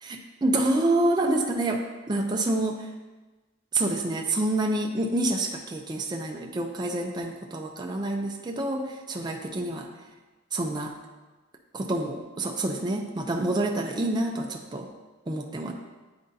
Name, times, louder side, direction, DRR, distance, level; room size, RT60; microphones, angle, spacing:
voice 1, 0.0-2.9 3.7-9.9 10.5-11.0 11.7-14.9 15.3-15.7, right 2 dB, 20° right, 1 dB, 0.4 m, -27 dB
9.5 x 3.8 x 2.7 m, 1.2 s
head